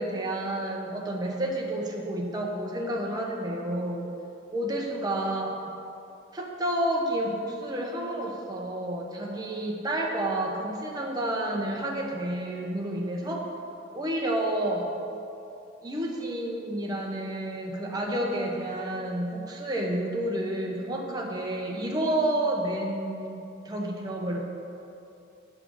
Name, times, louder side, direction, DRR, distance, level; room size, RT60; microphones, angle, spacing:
voice 1, 0.0-4.1 4.5-5.5 6.3-13.5 13.9-14.9 15.8-24.4, right 1 dB, 20° right, -1 dB, 1.1 m, -30 dB
7.8 x 6.1 x 6.4 m, 2.8 s
head